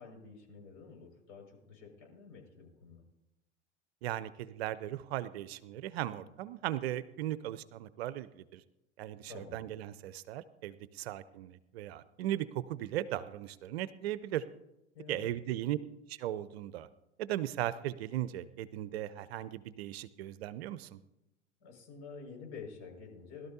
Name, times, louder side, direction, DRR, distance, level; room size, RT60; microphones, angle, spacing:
voice 1, 0.0-3.0 9.3-9.7 14.9-15.3 21.6-23.5, left 5 dB, 50° left, 1 dB, 5.6 m, -49 dB
voice 2, 4.0-8.6 9.0-14.4 15.1-15.8 16.1-16.9 17.2-21.0, right 13 dB, 60° right, 16 dB, 0.7 m, -37 dB
21.0 x 12.5 x 2.7 m, 0.91 s
figure-of-eight pair, 90°, 35 cm